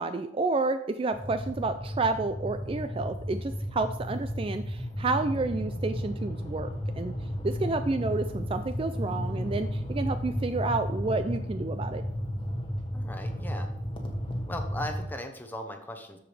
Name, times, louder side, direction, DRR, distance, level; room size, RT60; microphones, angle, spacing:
voice 1, 0.0-6.7 6.9-7.1 7.4-12.0, right 3 dB, 30° right, 9 dB, 0.3 m, -30 dB
sound 1, 1.1-15.1, equal, 25° left, 1.3 m, -33 dB
voice 2, 12.9-13.7 14.5-16.2, left 1 dB, 10° left, 5 dB, 1.0 m, -38 dB
13.5 x 4.9 x 3.3 m, 0.80 s
head